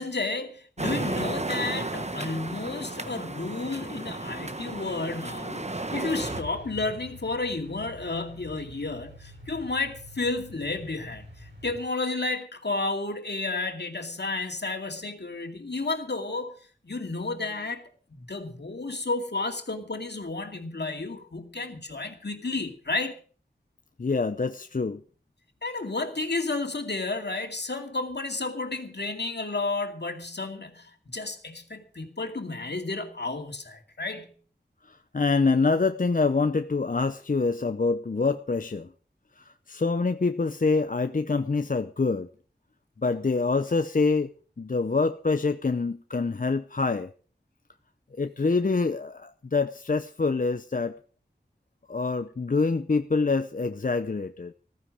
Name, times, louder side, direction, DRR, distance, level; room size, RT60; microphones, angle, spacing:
voice 1, 0.0-16.5 16.8-17.8 18.1-23.2 25.6-34.3, left 3 dB, 70° left, 5 dB, 2.4 m, -32 dB
sound 1, 0.8-6.4, right 2 dB, 40° right, 1.3 m, -33 dB
Truck, 6.2-11.8, left 1 dB, 85° right, 7.0 m, -45 dB
voice 2, 24.0-25.0 34.9-38.9 39.4-42.3 43.0-44.3 44.6-47.1 48.2-50.9 51.9-54.5, left 4 dB, 50° left, 10 dB, 0.6 m, -26 dB
14.5 x 14.0 x 5.0 m, 0.41 s
wide cardioid pair, 50°, 18 cm